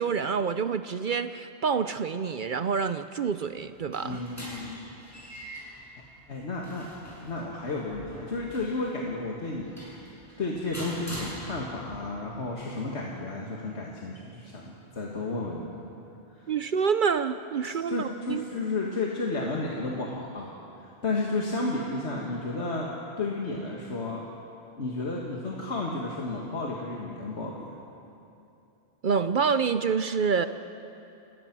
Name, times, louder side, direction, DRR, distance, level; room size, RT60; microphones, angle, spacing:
voice 1, 0.0-4.2 16.5-18.4 29.0-30.5, right 6 dB, 55° right, 11 dB, 0.7 m, -27 dB
sound 1, 3.6-12.0, equal, 15° left, 7.0 m, -44 dB
voice 2, 4.0-4.8 6.3-6.9 7.2-9.8 10.4-15.8 16.4-16.5 17.9-20.5 20.8-22.9 23.2-24.2 24.8-27.7, left 2 dB, 90° left, -2 dB, 2.2 m, -32 dB
29.0 x 19.5 x 6.1 m, 2.8 s
omnidirectional pair, 1.1 m